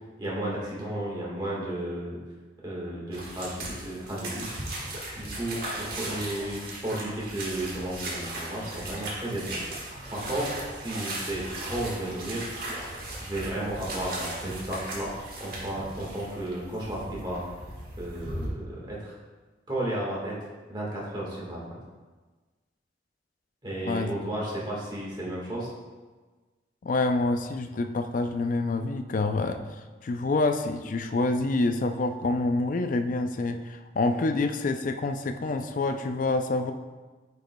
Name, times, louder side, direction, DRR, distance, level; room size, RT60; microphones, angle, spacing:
voice 1, 0.2-2.2 2.6-4.5 5.2-9.5 10.1-12.5 13.2-15.1 15.4-17.4 18.0-19.1 19.7-20.4 20.7-21.6 23.6-25.7, right 1 dB, 25° right, -5 dB, 1.5 m, -33 dB
sound 1, 3.1-18.5, right 1 dB, 50° right, 1.5 m, -37 dB
voice 2, 26.8-29.6 30.0-36.7, left 2 dB, 45° left, 8 dB, 0.4 m, -27 dB
9.0 x 5.1 x 2.2 m, 1.3 s
head